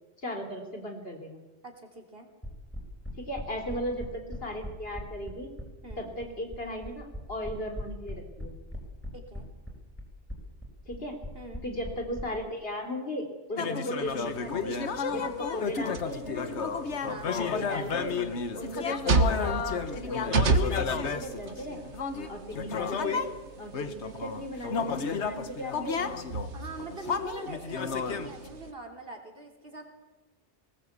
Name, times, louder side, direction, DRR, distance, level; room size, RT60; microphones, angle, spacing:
voice 1, 0.2-1.4 3.3-5.5 6.0-8.5 10.9-11.1 11.6-14.8 15.1-16.7 17.4-18.2 18.6-21.8 22.3-23.2 23.6-26.1, equal, 60° left, 3 dB, 3.8 m, -37 dB
voice 2, 1.6-2.3 3.6-3.8 5.8-6.1 9.1-9.5 11.3-11.6 13.5-13.7 17.1-17.3 22.2-22.5 26.5-29.8, right 3 dB, 55° right, 3 dB, 3.5 m, -43 dB
sound 1, 2.4-12.2, left 1 dB, 10° left, 4.8 m, -39 dB
sound 2, 13.6-23.4 23.7-28.5, left 5 dB, 80° left, 1.5 m, -32 dB
sound 3, 14.0-28.7, right 3 dB, 85° right, 1.6 m, -34 dB
19.5 x 19.5 x 8.2 m, 1.1 s
omnidirectional pair, 1.1 m